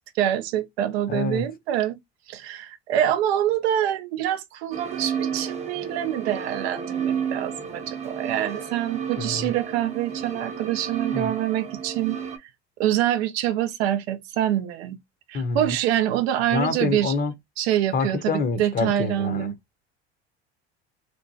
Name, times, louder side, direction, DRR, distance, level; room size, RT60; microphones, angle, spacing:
voice 1, 0.2-2.0 2.3-12.2 12.8-15.0 15.3-17.1 17.6-19.5, right 11 dB, 75° right, 0.6 m, -25 dB
voice 2, 1.1-1.4 9.2-9.5 11.1-11.3 15.3-15.7 16.5-17.3 17.9-19.5, left 4 dB, 30° left, 0.7 m, -27 dB
sound 1, 4.7-12.4, right 7 dB, 20° right, 0.7 m, -32 dB
2.9 x 2.1 x 2.6 m
hypercardioid pair, 75°, 32 cm